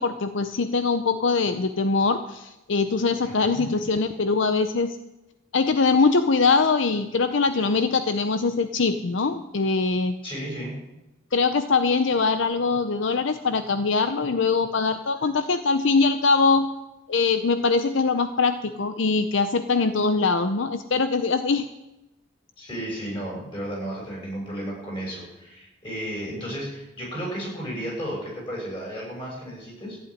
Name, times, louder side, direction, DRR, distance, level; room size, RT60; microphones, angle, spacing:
voice 1, 0.0-5.0 5.5-10.2 11.3-16.7 17.1-21.7, left 4 dB, 65° left, 10 dB, 0.6 m, -22 dB
voice 2, 3.2-3.7 10.2-10.7 22.6-30.0, equal, 25° left, -2 dB, 6.8 m, -33 dB
14.5 x 8.0 x 9.9 m, 0.95 s
head